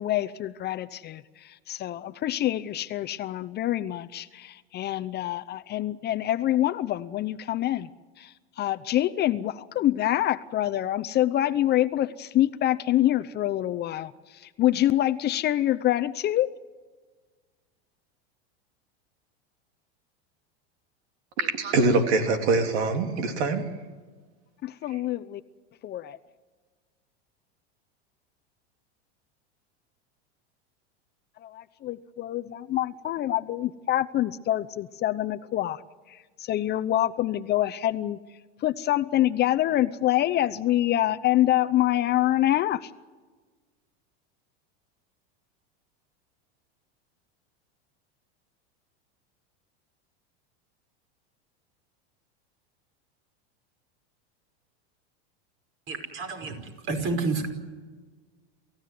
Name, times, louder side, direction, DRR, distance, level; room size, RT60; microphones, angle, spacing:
voice 1, 0.0-7.9 8.2-16.5 24.6-25.4 25.8-26.2 31.4-35.8 36.1-38.2 38.6-42.9, left 13 dB, 30° left, 0.8 m, -26 dB
voice 2, 21.4-23.7 24.9-25.0, right 3 dB, 80° right, 3.5 m, -24 dB
voice 3, 55.9-56.6 56.9-57.5, right 3 dB, 40° right, 5.4 m, -29 dB
28.5 x 15.5 x 9.5 m
supercardioid pair, 130°, 32 cm